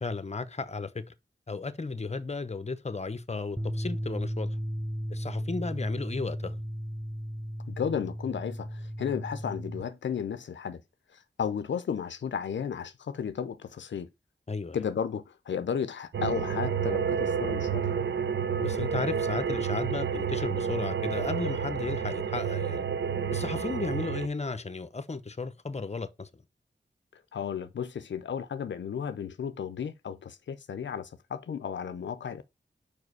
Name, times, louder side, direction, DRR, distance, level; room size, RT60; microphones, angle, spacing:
voice 1, 0.0-1.0 1.5-4.5 5.1-6.6 14.5-14.8 18.6-22.8 23.3-26.3, left 3 dB, 35° left, 0.9 m, -34 dB
sound 1, 3.6-9.8, equal, ahead, 0.6 m, -35 dB
voice 2, 7.7-10.8 11.1-14.1 14.7-18.0 27.1-32.4, left 7 dB, 85° left, 0.5 m, -34 dB
sound 2, 16.1-24.3, right 7 dB, 80° right, 0.6 m, -30 dB
5.0 x 4.9 x 4.6 m
cardioid pair, 45°, 18 cm